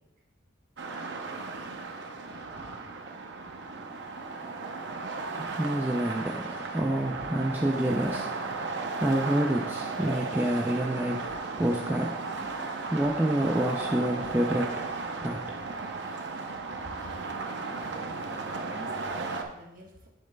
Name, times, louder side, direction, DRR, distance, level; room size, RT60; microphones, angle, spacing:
sound 1, 0.8-19.4, right 3 dB, 65° right, 0.7 m, -35 dB
voice 1, 5.4-11.3 11.6-12.6 12.9-14.8 15.2-15.6 17.6-17.8, right 1 dB, 10° right, 1 dB, 0.4 m, -28 dB
voice 2, 16.8-17.2 18.7-20.1, right 1 dB, 45° right, 0 dB, 1.2 m, -47 dB
10.5 x 6.4 x 2.3 m, 0.90 s
head